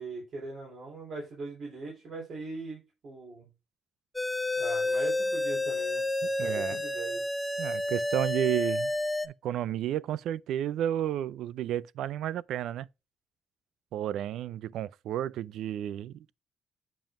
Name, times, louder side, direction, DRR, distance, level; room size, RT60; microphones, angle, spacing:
voice 1, 0.0-3.5 4.6-7.3, right 3 dB, 50° right, 3.6 m, -41 dB
sound 1, 4.2-9.3, left 2 dB, 5° left, 0.5 m, -30 dB
voice 2, 6.4-6.8 7.6-8.9 9.2-12.9 13.9-16.3, right 11 dB, 75° right, 0.3 m, -32 dB
7.5 x 7.0 x 2.5 m
cardioid pair, 170°, 0 cm